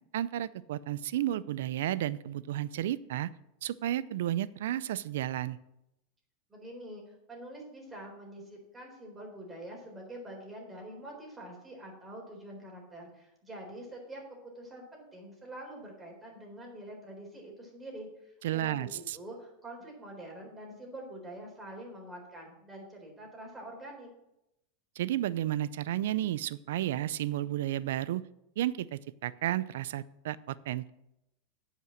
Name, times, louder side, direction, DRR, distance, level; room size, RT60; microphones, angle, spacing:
voice 1, 0.1-3.3 3.6-5.6 18.4-19.2 25.0-28.2 28.6-30.9, right 13 dB, 80° right, 18 dB, 0.4 m, -32 dB
voice 2, 6.5-24.1, right 1 dB, 15° right, -1 dB, 4.0 m, -46 dB
9.3 x 5.6 x 7.3 m, 0.85 s
supercardioid pair, 125°, 0 cm